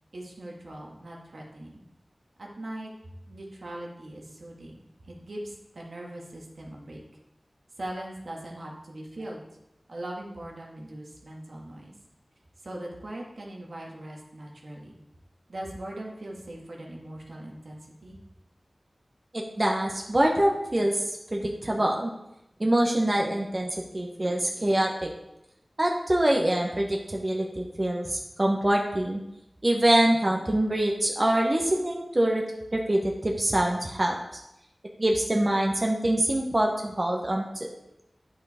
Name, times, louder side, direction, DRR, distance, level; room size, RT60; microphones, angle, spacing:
voice 1, 0.1-1.8 2.4-2.9 3.3-4.8 5.0-7.0 7.8-9.4 9.9-11.9 12.6-15.0 15.5-18.2, right 1 dB, 80° right, -2 dB, 1.6 m, -40 dB
voice 2, 19.3-22.1 22.6-23.7 23.9-25.1 25.8-29.2 29.6-32.4 32.7-34.2 35.0-37.7, right 1 dB, 40° right, 0 dB, 1.0 m, -25 dB
8.9 x 5.6 x 4.3 m, 0.87 s
wide cardioid pair, 50°, 0 cm